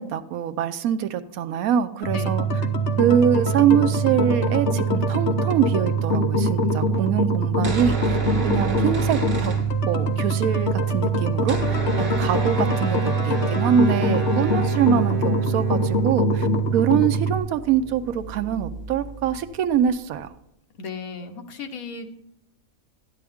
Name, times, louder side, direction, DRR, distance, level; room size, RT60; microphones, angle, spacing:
voice 1, 0.0-2.5 3.0-8.2 8.4-9.5 9.9-16.5 16.7-20.3, right 9 dB, 80° right, 9 dB, 1.1 m, -24 dB
sound 1, 2.0-17.4, right 2 dB, 55° left, 1.1 m, -23 dB
sound 2, 7.5-10.2 10.5-10.6 10.8-20.2, equal, 40° right, 1.9 m, -33 dB
voice 2, 20.8-22.1, left 4 dB, 75° left, 5 dB, 1.5 m, -35 dB
11.5 x 10.0 x 3.5 m, 0.80 s
omnidirectional pair, 1.5 m